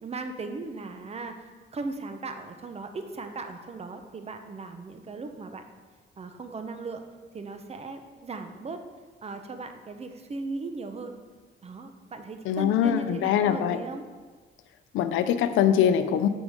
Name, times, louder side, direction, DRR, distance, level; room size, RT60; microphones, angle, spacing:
voice 1, 0.0-5.6 6.2-7.0 7.3-8.8 9.2-11.1 11.6-14.0, right 3 dB, 30° right, 7 dB, 0.8 m, -37 dB
voice 2, 12.5-13.8 14.9-16.3, left 9 dB, 90° left, 10 dB, 0.5 m, -23 dB
8.8 x 5.0 x 3.6 m, 1.4 s
cardioid pair, 90°, 20 cm